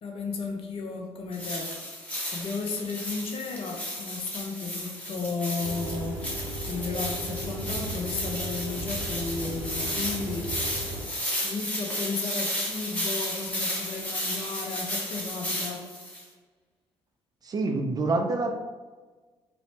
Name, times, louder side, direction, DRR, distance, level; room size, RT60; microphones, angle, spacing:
voice 1, 0.0-1.7 2.3-10.5 11.4-15.8, left 4 dB, 45° left, 2 dB, 0.6 m, -34 dB
sound 1, 1.3-16.2, equal, 10° left, 0.9 m, -33 dB
sound 2, 5.6-11.0, right 1 dB, 85° right, 0.7 m, -36 dB
voice 2, 17.4-18.5, right 3 dB, 30° right, 3 dB, 0.4 m, -26 dB
4.0 x 2.0 x 2.9 m, 1.3 s
figure-of-eight pair, 50°, 13 cm